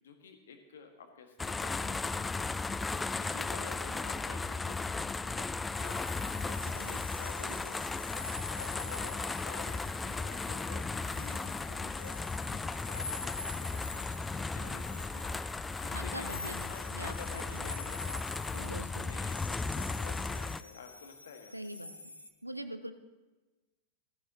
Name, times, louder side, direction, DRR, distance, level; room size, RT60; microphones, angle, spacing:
voice 1, 0.0-6.8 7.2-7.8 8.1-12.1 12.4-14.1 14.4-15.4 15.8-16.3 16.7-18.2 18.5-21.5, left 6 dB, 65° left, 5 dB, 1.7 m, -51 dB
sound 1, 1.4-20.6, left 3 dB, 10° left, 0.3 m, -36 dB
sound 2, 5.7-22.3, left 3 dB, 80° left, 1.1 m, -46 dB
voice 2, 6.4-7.0 8.7-9.3 15.9-17.7 18.6-19.1 21.5-21.9 22.4-22.9, right 1 dB, 85° right, 10 dB, 0.8 m, -44 dB
16.0 x 14.5 x 2.9 m, 1.2 s
figure-of-eight pair, 90°, 0 cm